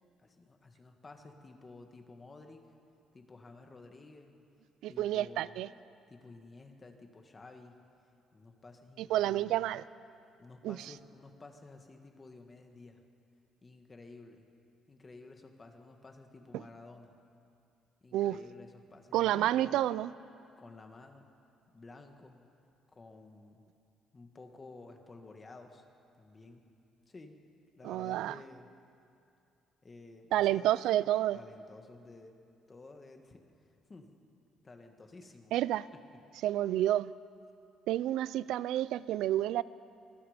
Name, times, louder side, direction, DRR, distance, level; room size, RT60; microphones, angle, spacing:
voice 1, 0.2-2.6 3.1-4.3 4.9-5.6 6.1-7.8 8.3-9.7 10.4-13.0 13.6-14.4 14.9-17.1 18.0-19.8 20.6-21.3 21.7-22.4 22.9-23.6 24.1-25.8 26.2-26.6 27.1-27.4 27.8-28.7 29.8-30.7 31.3-32.4 32.7-34.1 34.6-35.5 35.9-36.0, left 3 dB, 20° left, 4 dB, 1.7 m, -53 dB
voice 2, 4.8-5.7 9.0-9.8 10.6-10.8 16.5-16.6 18.1-18.4 19.1-20.1 27.8-28.4 30.3-31.4 35.5-35.9 36.4-37.1 37.9-39.6, right 13 dB, 80° right, 18 dB, 0.4 m, -29 dB
25.0 x 20.5 x 5.1 m, 2.5 s
cardioid pair, 165°, 0 cm